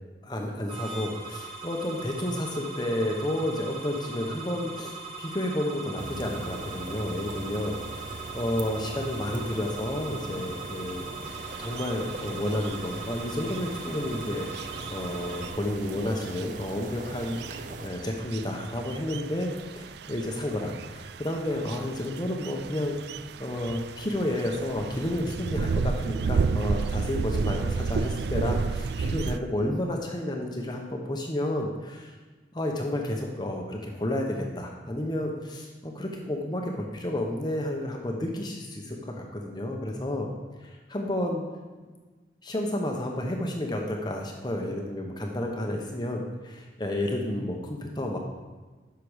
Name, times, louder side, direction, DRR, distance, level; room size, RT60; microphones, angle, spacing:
voice 1, 0.2-11.1 11.4-23.0 23.4-32.2 32.5-40.3 40.6-41.4 42.4-48.2, left 1 dB, 25° left, 1 dB, 0.9 m, -31 dB
sound 1, 0.7-15.5, right 4 dB, 30° right, 1.9 m, -40 dB
sound 2, 6.0-17.9, right 2 dB, 45° right, 0.8 m, -41 dB
sound 3, 11.3-29.4, right 4 dB, 65° right, 0.3 m, -33 dB
11.0 x 6.8 x 5.0 m, 1.3 s
head